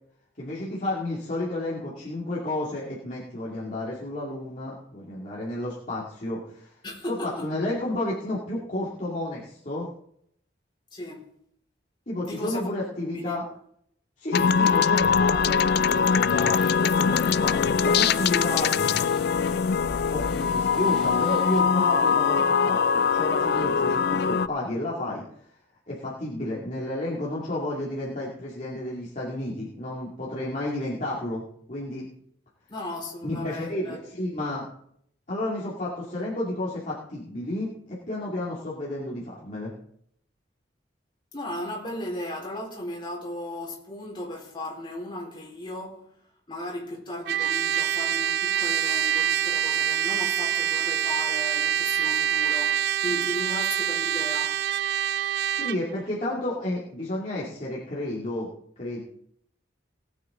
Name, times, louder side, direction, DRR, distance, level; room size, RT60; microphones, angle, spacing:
voice 1, 0.4-6.7 7.1-9.9 12.1-13.4 14.2-18.7 20.1-25.2 25.9-32.1 33.2-34.7 35.3-39.7 55.5-58.5 58.8-59.0, left 1 dB, 40° left, 2.4 m, -31 dB
voice 2, 6.8-7.5 10.9-11.3 12.2-12.6 13.1-13.4 32.7-34.0 41.3-46.2 46.5-54.6, left 1 dB, 25° left, 4.3 m, -36 dB
sound 1, 14.3-24.5, left 6 dB, 60° left, 0.4 m, -22 dB
sound 2, 15.0-21.6, equal, ahead, 3.1 m, -42 dB
Trumpet, 47.3-55.8, right 10 dB, 60° right, 0.3 m, -25 dB
19.0 x 8.6 x 3.8 m
head